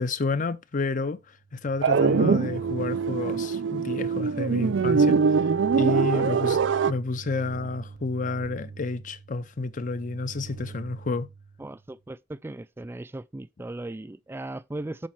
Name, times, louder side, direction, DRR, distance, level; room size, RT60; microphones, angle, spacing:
voice 1, 0.0-11.3, left 3 dB, 45° left, 0.6 m, -30 dB
sound 1, 1.3-11.9, right 4 dB, 65° right, 0.8 m, -44 dB
sound 2, 1.8-6.9, right 5 dB, 85° right, 0.4 m, -23 dB
voice 2, 5.9-6.4 11.6-15.1, right 2 dB, 15° right, 0.3 m, -37 dB
7.6 x 4.4 x 5.7 m
head